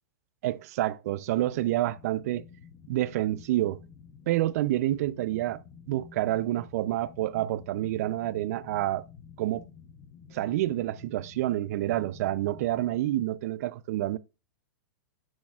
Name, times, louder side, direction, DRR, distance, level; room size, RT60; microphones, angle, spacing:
voice 1, 0.4-2.4 2.9-3.8 4.3-5.6 5.9-9.0 9.4-9.6 10.3-14.2, right 15 dB, 55° right, 0.4 m, -28 dB
sound 1, 1.3-13.0, left 7 dB, 30° left, 0.9 m, -51 dB
12.0 x 6.3 x 2.3 m
hypercardioid pair, 150°, 10 cm